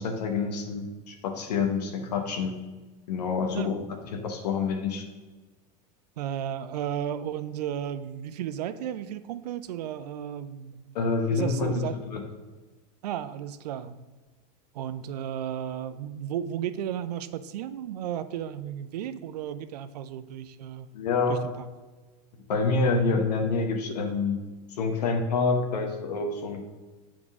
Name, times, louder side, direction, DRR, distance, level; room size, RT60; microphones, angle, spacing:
voice 1, 0.0-2.6 3.1-3.8 4.1-5.0 10.9-11.8 12.1-12.2 20.9-21.4 22.5-24.4 24.7-26.6, left 4 dB, 80° left, 4 dB, 1.1 m, -27 dB
voice 2, 6.2-10.8 11.3-12.0 13.0-14.0 14.7-20.9 21.3-21.7, right 10 dB, 80° right, 12 dB, 0.5 m, -34 dB
7.8 x 3.7 x 4.9 m, 1.2 s
hypercardioid pair, 115°, 20 cm